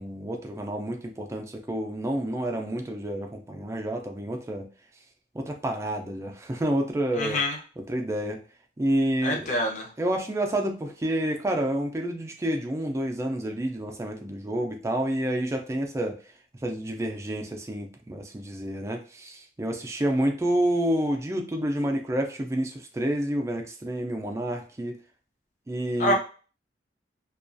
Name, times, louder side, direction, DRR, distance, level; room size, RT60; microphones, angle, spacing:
voice 1, 0.0-4.7 5.3-7.4 7.9-8.4 8.8-9.5 10.0-16.2 16.6-25.0 25.7-26.1, right 1 dB, 15° right, 3 dB, 0.3 m, -29 dB
voice 2, 7.2-7.6 9.2-9.9 26.0-26.1, left 1 dB, 45° left, 0 dB, 0.6 m, -25 dB
2.3 x 2.3 x 2.5 m, 0.37 s
head